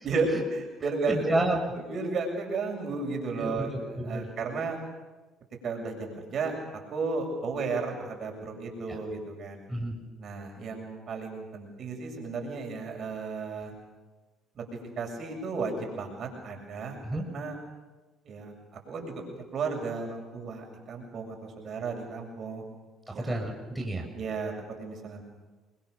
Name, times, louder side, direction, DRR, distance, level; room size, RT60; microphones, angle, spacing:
voice 1, 0.0-1.5 1.8-3.7 4.0-4.8 5.6-6.5 6.9-9.6 10.2-13.7 14.6-14.7 15.0-17.0 17.3-17.6 18.2-18.5 18.9-19.2 19.5-22.6 23.1-23.3 24.1-25.2, right 4 dB, 55° right, 2 dB, 7.5 m, -33 dB
voice 2, 1.1-1.6 3.4-4.3 9.7-10.0 17.0-17.2 23.1-24.1, right 1 dB, 10° right, 1 dB, 6.7 m, -30 dB
29.5 x 23.5 x 6.9 m, 1.2 s
supercardioid pair, 75°, 0 cm